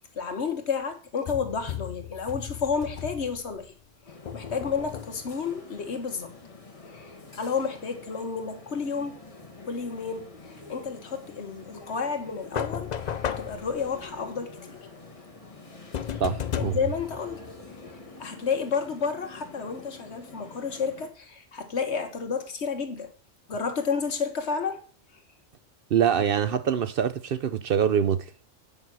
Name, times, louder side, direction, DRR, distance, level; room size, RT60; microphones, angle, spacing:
voice 1, 0.1-3.7 4.3-6.3 6.8-9.2 9.6-10.3 10.7-12.9 13.3-14.8 16.1-16.2 16.6-17.4 18.2-23.1 23.5-24.8, left 5 dB, 70° left, 1.6 m, -31 dB
sound 1, 1.3-3.7 4.3-5.4 12.5-14.2 15.9-17.9, left 9 dB, 50° left, 0.5 m, -35 dB
sound 2, 4.1-21.1, left 3 dB, 30° left, 1.5 m, -47 dB
voice 2, 16.2-16.8 25.9-28.3, right 8 dB, 60° right, 0.7 m, -24 dB
8.7 x 5.6 x 6.0 m
omnidirectional pair, 1.2 m